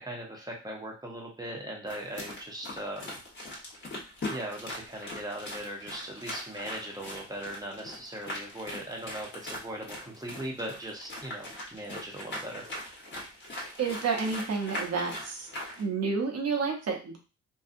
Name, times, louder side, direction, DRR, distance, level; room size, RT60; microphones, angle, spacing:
voice 1, 0.0-3.2 4.3-12.6, right 1 dB, 15° right, -1 dB, 0.9 m, -39 dB
sound 1, 1.9-15.8, left 1 dB, 40° left, 1.2 m, -40 dB
voice 2, 13.8-15.5 15.8-17.2, right 5 dB, 55° right, 1 dB, 0.9 m, -30 dB
2.7 x 2.3 x 2.5 m, 0.33 s
cardioid pair, 80°, 29 cm